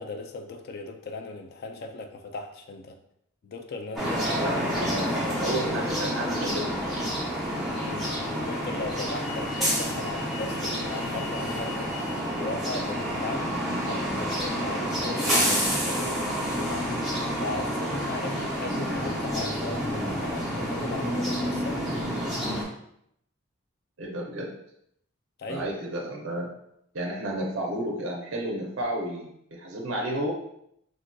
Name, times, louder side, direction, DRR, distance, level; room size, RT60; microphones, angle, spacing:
voice 1, 0.0-3.0 3.4-4.5 4.9-5.2 7.7-11.9 12.4-15.4 15.7-17.0 17.4-22.0 25.4-25.7, left 3 dB, 45° left, 5 dB, 0.3 m, -37 dB
sound 1, 4.0-22.6, equal, ahead, 0.6 m, -29 dB
voice 2, 4.4-6.8 7.5-7.6 24.0-24.5 25.5-26.5 26.9-30.3, right 1 dB, 55° right, 0 dB, 0.5 m, -32 dB
3.5 x 2.5 x 2.2 m, 0.73 s
head